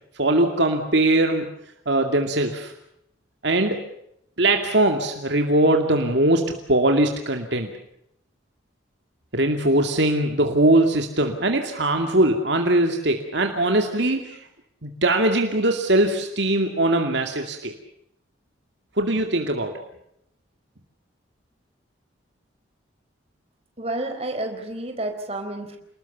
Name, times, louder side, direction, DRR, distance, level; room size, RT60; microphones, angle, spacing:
voice 1, 0.2-1.5 1.9-2.7 3.4-3.8 4.4-7.7 9.3-14.4 14.8-17.7 19.0-19.8, right 1 dB, 60° right, 4 dB, 2.4 m, -21 dB
voice 2, 23.8-25.8, right 2 dB, 30° right, 5 dB, 4.3 m, -30 dB
29.0 x 20.5 x 7.0 m, 0.75 s
head